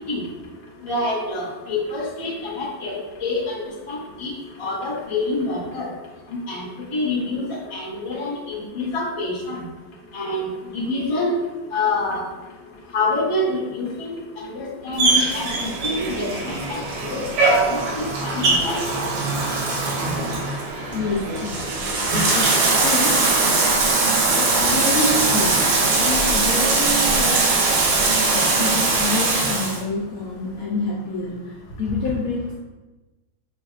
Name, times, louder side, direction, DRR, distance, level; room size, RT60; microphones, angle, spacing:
voice 1, 0.8-3.6 3.9-4.3 4.6-5.9 6.3-9.6 10.1-10.4 10.7-11.4 11.7-12.2 12.9-13.9 14.4-18.8, left 2 dB, 35° left, -4 dB, 0.5 m, -26 dB
Bathtub (filling or washing), 15.0-29.8, right 3 dB, 70° right, 1.4 m, -21 dB
voice 2, 20.9-23.3 24.4-27.8 28.3-32.6, left 3 dB, 80° left, -3 dB, 0.7 m, -28 dB
sound 1, 23.5-30.6, right 1 dB, 35° right, 1.5 m, -39 dB
5.5 x 3.4 x 2.4 m, 1.1 s
omnidirectional pair, 2.2 m